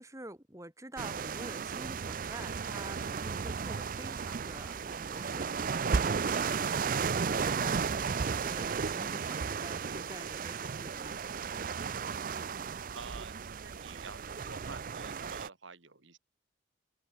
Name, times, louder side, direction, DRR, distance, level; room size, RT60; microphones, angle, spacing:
voice 1, 0.0-6.7 7.2-11.2, right 1 dB, 15° right, 2.8 m, -48 dB
sound 1, 1.0-15.5, right 5 dB, 45° right, 0.4 m, -34 dB
voice 2, 12.9-16.2, right 4 dB, 70° right, 2.1 m, -48 dB
head